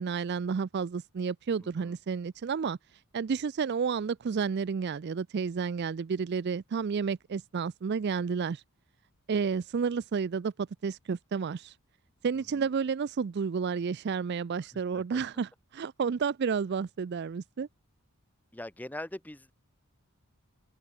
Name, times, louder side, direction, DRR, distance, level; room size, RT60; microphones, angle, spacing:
voice 1, 0.0-2.8 3.1-8.6 9.3-11.7 12.2-17.7, right 6 dB, 50° right, 0.4 m, -31 dB
voice 2, 1.6-1.9 12.4-12.7 14.7-15.2 18.5-19.5, left 1 dB, 5° left, 0.7 m, -43 dB
open air
head